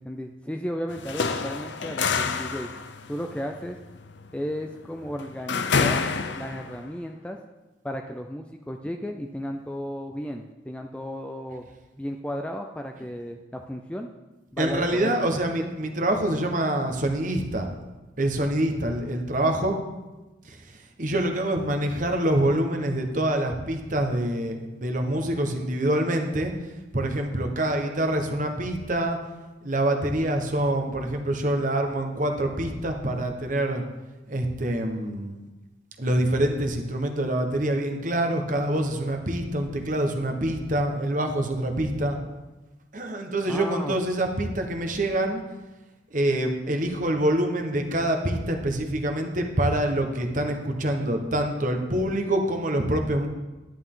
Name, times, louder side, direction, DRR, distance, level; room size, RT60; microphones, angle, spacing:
voice 1, 0.0-2.7 3.1-3.8 4.3-7.4 7.8-11.7 12.0-14.1 14.5-15.7 43.5-44.0, equal, 5° left, 3 dB, 0.4 m, -34 dB
sound 1, 0.9-6.8, left 5 dB, 65° left, 0.6 m, -28 dB
voice 2, 14.6-17.7 18.2-19.7 20.5-20.6 21.0-26.5 26.9-29.2 29.6-33.8 34.3-35.4 36.0-42.2 42.9-45.4 46.1-53.3, right 1 dB, 40° right, 4 dB, 1.2 m, -25 dB
11.0 x 10.5 x 3.8 m, 1.1 s
head